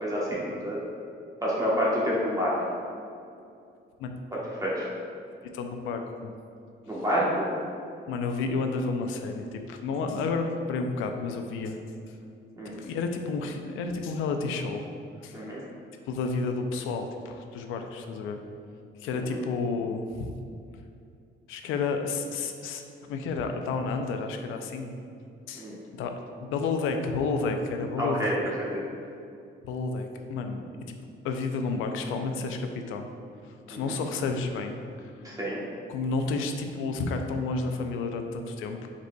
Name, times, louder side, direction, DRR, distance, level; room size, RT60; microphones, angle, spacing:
voice 1, 0.0-0.8 1.4-2.5 4.6-4.9 6.9-7.5 12.6-12.7 15.3-15.6 19.3-19.4 25.5-25.8 28.0-28.8 33.7-34.0 35.2-35.6, equal, 15° right, -6 dB, 1.0 m, -28 dB
voice 2, 5.5-6.3 8.1-11.8 12.8-14.9 15.2-15.4 16.1-18.4 19.0-20.3 21.5-22.8 23.1-24.9 25.5-26.1 26.4-28.3 29.6-30.9 31.2-33.1 33.4-34.8 35.9-38.9, left 4 dB, 90° left, 5 dB, 0.4 m, -31 dB
5.0 x 4.1 x 2.2 m, 2.5 s
cardioid pair, 90°, 20 cm